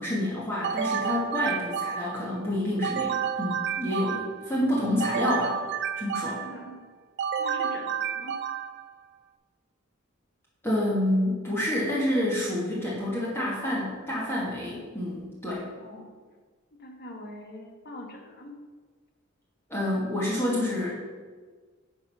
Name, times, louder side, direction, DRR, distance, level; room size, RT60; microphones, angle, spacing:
voice 1, 0.0-5.5 6.0-6.4 10.6-15.7 19.7-20.9, left 1 dB, 10° left, -6 dB, 1.6 m, -28 dB
sound 1, 0.6-2.3 2.8-4.5 5.0-6.6 7.2-8.9, right 7 dB, 55° right, 0.5 m, -30 dB
voice 2, 6.3-6.8 7.4-8.3 15.8-16.1 16.7-18.5, left 1 dB, 50° left, 2 dB, 1.4 m, -43 dB
9.9 x 4.7 x 5.5 m, 1.5 s
head